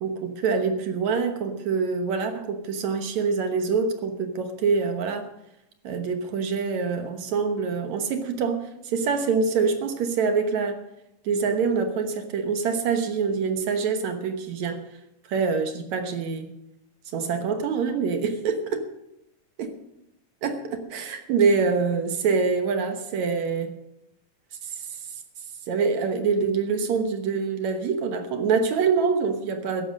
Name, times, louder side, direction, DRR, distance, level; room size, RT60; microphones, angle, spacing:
voice 1, 0.0-5.3 5.8-10.8 11.2-14.8 15.3-16.5 17.1-18.9 20.4-23.7 24.6-24.9 25.7-29.9, right 5 dB, 65° right, 7 dB, 2.3 m, -25 dB
13.5 x 11.0 x 6.4 m, 0.85 s
omnidirectional pair, 3.9 m